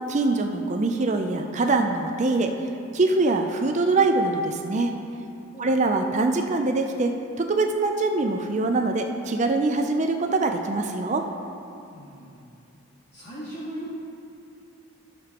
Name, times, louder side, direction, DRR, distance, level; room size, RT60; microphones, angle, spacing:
voice 1, 0.1-2.5 2.9-4.9 5.6-11.3, right 3 dB, 30° right, 5 dB, 0.4 m, -23 dB
voice 2, 11.9-12.4 13.1-14.1, right 1 dB, 30° left, -10 dB, 1.8 m, -37 dB
14.0 x 6.8 x 2.9 m, 2.6 s
head